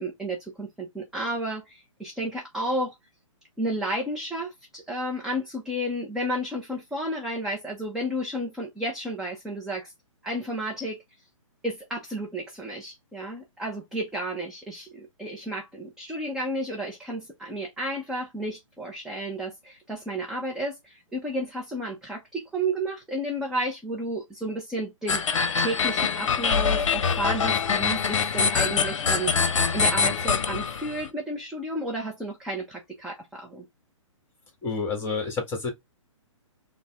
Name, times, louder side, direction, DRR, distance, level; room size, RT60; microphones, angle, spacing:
voice 1, 0.0-2.9 3.6-9.9 10.2-11.0 11.6-25.2 25.6-33.7, right 1 dB, 5° right, 0.5 m, -32 dB
sound 1, 25.1-31.1, left 6 dB, 65° left, 0.7 m, -24 dB
voice 2, 34.6-35.7, left 4 dB, 15° left, 1.4 m, -29 dB
3.9 x 2.0 x 3.4 m
hypercardioid pair, 135°, 17 cm